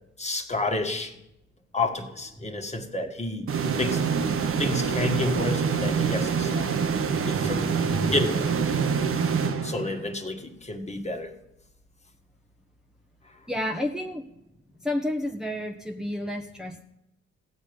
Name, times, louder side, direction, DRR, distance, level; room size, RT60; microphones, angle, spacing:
voice 1, 0.2-1.1 1.7-4.0 4.6-6.7 7.2-7.8 8.1-8.5 9.6-11.3, left 2 dB, 20° left, 5 dB, 1.8 m, -30 dB
sound 1, 3.5-10.2, right 6 dB, 45° right, 1.2 m, -26 dB
voice 2, 7.1-8.1 13.5-14.3 14.8-16.8, left 1 dB, ahead, 1 dB, 1.2 m, -31 dB
16.0 x 7.7 x 5.3 m, 0.87 s
hypercardioid pair, 50°, 30 cm